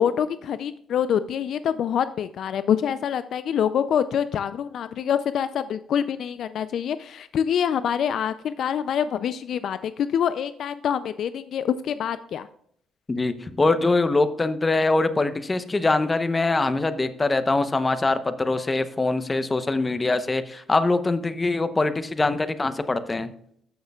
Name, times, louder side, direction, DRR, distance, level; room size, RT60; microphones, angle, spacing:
voice 1, 0.0-12.5, left 8 dB, 65° left, 13 dB, 0.4 m, -25 dB
voice 2, 13.1-23.3, left 3 dB, 25° left, 11 dB, 0.8 m, -23 dB
13.5 x 6.5 x 2.3 m, 0.66 s
cardioid pair, 90°, 0 cm